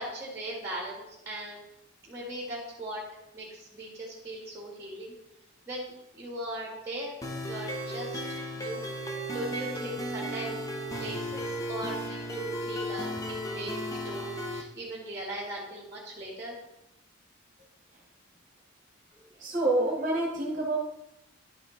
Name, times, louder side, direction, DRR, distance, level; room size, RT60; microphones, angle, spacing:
voice 1, 0.0-1.6 2.0-3.0 3.3-5.1 5.7-7.1 7.5-8.2 8.5-8.8 9.3-10.6 10.9-16.5, right 1 dB, 15° right, -3 dB, 1.6 m, -39 dB
sound 1, 7.2-14.6, equal, 15° left, 0.7 m, -35 dB
voice 2, 19.4-20.8, right 2 dB, 40° right, -3 dB, 1.2 m, -27 dB
10.5 x 5.0 x 3.8 m, 0.90 s
head